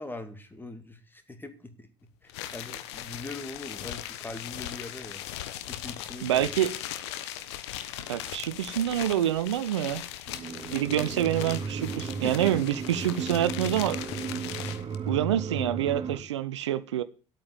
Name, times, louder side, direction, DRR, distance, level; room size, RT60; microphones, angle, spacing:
voice 1, 0.0-1.9 2.2-5.2 5.7-6.5 12.2-12.5, left 2 dB, 15° left, 2.4 m, -41 dB
sound 1, 2.3-15.0, left 12 dB, 70° left, 1.1 m, -39 dB
voice 2, 6.2-6.7 8.1-10.0 10.7-14.0 15.1-17.0, right 11 dB, 80° right, 0.7 m, -27 dB
sound 2, 10.3-16.2, right 6 dB, 35° right, 3.3 m, -35 dB
11.0 x 8.6 x 7.7 m
figure-of-eight pair, 65°, 15 cm